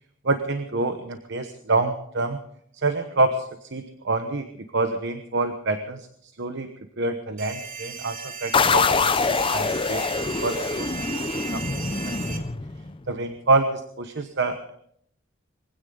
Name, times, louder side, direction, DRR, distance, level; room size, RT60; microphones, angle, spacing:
voice 1, 0.2-2.4 2.7-6.7 7.0-10.0 10.4-11.3 11.5-12.5 13.1-14.7, right 3 dB, 60° right, 7 dB, 1.1 m, -27 dB
sound 1, 7.4-12.4, right 6 dB, 40° right, 1.6 m, -36 dB
sound 2, 8.5-13.1, left 4 dB, 25° left, 0.6 m, -24 dB
22.5 x 16.5 x 3.9 m, 0.69 s
head